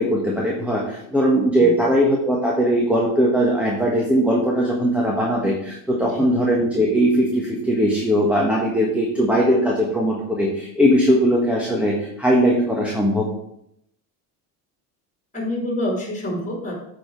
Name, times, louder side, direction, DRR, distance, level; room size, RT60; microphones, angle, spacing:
voice 1, 0.0-13.2, equal, 5° right, -3 dB, 1.5 m, -19 dB
voice 2, 15.3-16.8, left 1 dB, 15° left, 0 dB, 2.7 m, -27 dB
8.4 x 4.9 x 4.7 m, 0.76 s
cardioid pair, 110°, 43 cm